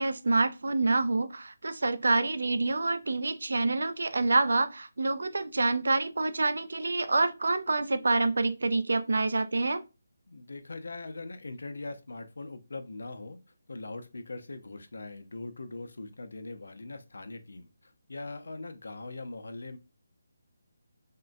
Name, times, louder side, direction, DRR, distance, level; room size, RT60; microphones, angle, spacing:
voice 1, 0.0-9.8, right 3 dB, 75° right, 0.4 m, -27 dB
voice 2, 10.3-13.4 13.7-19.8, left 2 dB, 75° left, 0.5 m, -41 dB
3.6 x 2.1 x 2.5 m
hypercardioid pair, 175°, 0 cm